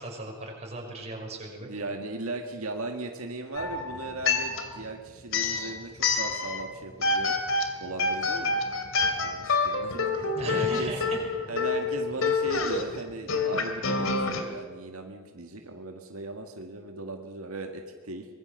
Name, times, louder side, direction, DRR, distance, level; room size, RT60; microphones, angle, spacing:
voice 1, 0.0-1.7 10.3-11.2, right 1 dB, 30° right, 0 dB, 6.0 m, -36 dB
voice 2, 1.6-7.4 7.8-8.6 9.2-10.9 11.5-18.3, right 2 dB, 90° right, 3 dB, 2.0 m, -38 dB
sound 1, 3.6-4.9 5.3-6.7 7.0-14.4, left 4 dB, 65° left, 2.7 m, -27 dB
25.0 x 21.5 x 6.7 m, 1.5 s
head